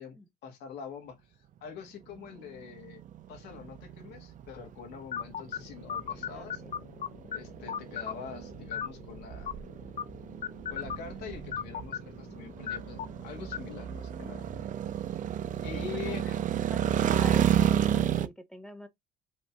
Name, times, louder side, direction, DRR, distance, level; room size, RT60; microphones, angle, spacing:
voice 1, 0.0-3.0 3.3-6.6 7.3-9.5 10.7-14.4 15.6-16.3, left 7 dB, 85° left, 1.6 m, -44 dB
sound 1, 2.1-18.3, right 10 dB, 50° right, 0.6 m, -32 dB
sound 2, 5.1-14.6, left 8 dB, 45° left, 0.5 m, -40 dB
voice 2, 6.3-6.7 15.7-18.9, left 1 dB, 5° left, 0.9 m, -45 dB
5.2 x 2.7 x 3.5 m
cardioid pair, 110°, 17 cm